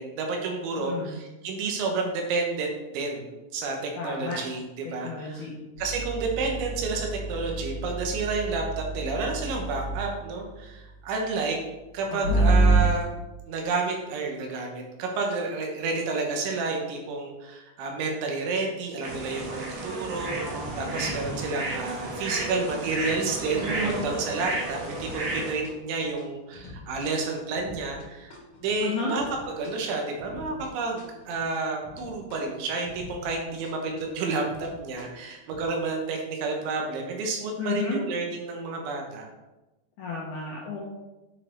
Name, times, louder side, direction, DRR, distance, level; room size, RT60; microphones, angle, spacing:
voice 1, 0.0-5.5 5.8-11.6 11.9-13.1 13.5-20.4 20.8-39.3, right 3 dB, 90° right, 1 dB, 3.5 m, -30 dB
voice 2, 0.7-1.1 4.0-4.4 4.8-5.5 12.1-12.4 28.8-29.1 37.6-38.0 40.0-40.8, left 5 dB, 75° left, -4 dB, 1.8 m, -32 dB
sound 1, 5.8-10.1 12.2-12.8, right 2 dB, 50° right, 1.7 m, -27 dB
sound 2, 19.0-25.5, right 2 dB, 65° right, 3.2 m, -32 dB
sound 3, 25.0-25.4 25.6-33.4 33.6-35.6, left 2 dB, 60° left, 1.9 m, -46 dB
8.8 x 4.4 x 4.4 m, 1.0 s
omnidirectional pair, 5.2 m